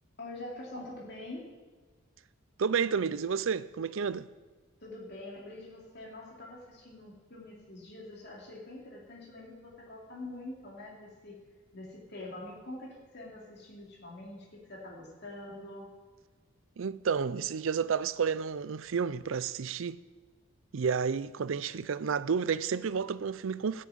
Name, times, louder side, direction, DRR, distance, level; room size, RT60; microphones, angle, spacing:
voice 1, 0.2-1.4 4.8-11.4 11.7-15.9, left 2 dB, 50° left, 2.9 m, -45 dB
voice 2, 2.6-4.3 16.8-20.0 20.7-23.9, right 6 dB, 65° right, 0.5 m, -31 dB
14.5 x 7.6 x 8.5 m
head